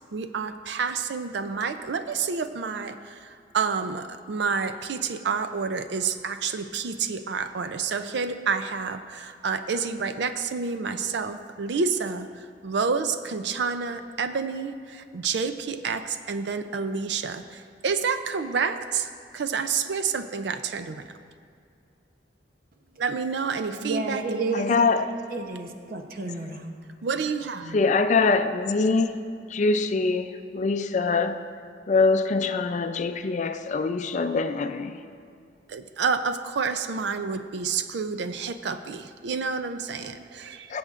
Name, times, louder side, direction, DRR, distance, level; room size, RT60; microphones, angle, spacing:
voice 1, 0.1-3.0 3.5-12.3 12.6-17.4 17.8-19.1 19.3-21.0 23.0-24.2 27.0-27.8 35.7-40.8, right 5 dB, 70° right, 0.4 m, -29 dB
voice 2, 23.8-24.7 25.3-26.7, right 3 dB, 55° right, 0.8 m, -31 dB
voice 3, 24.5-25.3 27.6-29.2 29.5-31.4 31.9-35.0 40.7-40.8, left 4 dB, 40° left, 0.4 m, -24 dB
19.0 x 7.8 x 2.5 m
head